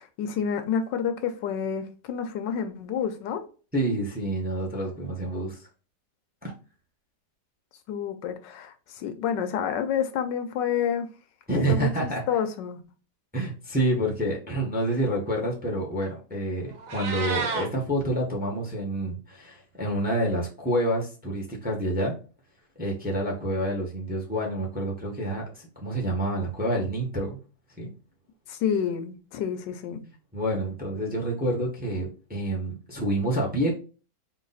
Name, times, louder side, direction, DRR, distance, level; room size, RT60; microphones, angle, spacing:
voice 1, 0.0-3.4 7.9-11.1 11.7-12.8 28.5-30.0, left 8 dB, 85° left, 1.3 m, -29 dB
voice 2, 3.7-5.6 6.4-6.5 11.5-12.2 13.3-22.1 22.8-27.4 27.8-27.9 30.3-33.7, right 1 dB, 5° right, 0.7 m, -28 dB
Meow, 16.7-17.7, right 5 dB, 70° right, 1.6 m, -30 dB
4.0 x 2.6 x 3.9 m
omnidirectional pair, 1.9 m